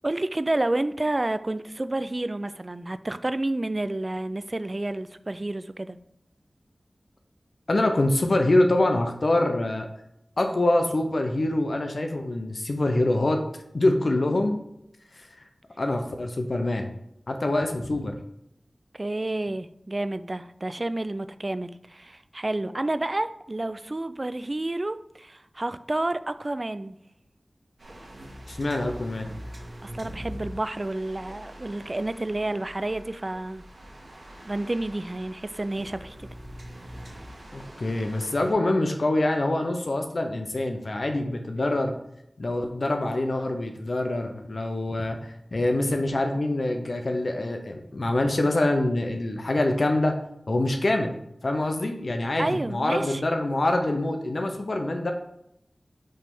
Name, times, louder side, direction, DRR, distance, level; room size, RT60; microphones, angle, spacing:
voice 1, 0.0-6.0 18.9-27.0 29.8-33.6 34.4-36.3 52.4-53.2, right 2 dB, 40° right, 13 dB, 0.4 m, -30 dB
voice 2, 7.7-9.9 10.4-13.4 13.7-14.6 15.1-15.3 15.8-16.9 17.3-18.1 28.5-29.3 37.5-41.9 42.4-50.2 50.5-51.1 51.4-55.1, left 2 dB, 65° left, 4 dB, 0.7 m, -25 dB
sound 1, 27.8-38.5, equal, 80° right, 1.5 m, -43 dB
5.4 x 3.3 x 5.4 m, 0.79 s
wide cardioid pair, 45°, 0 cm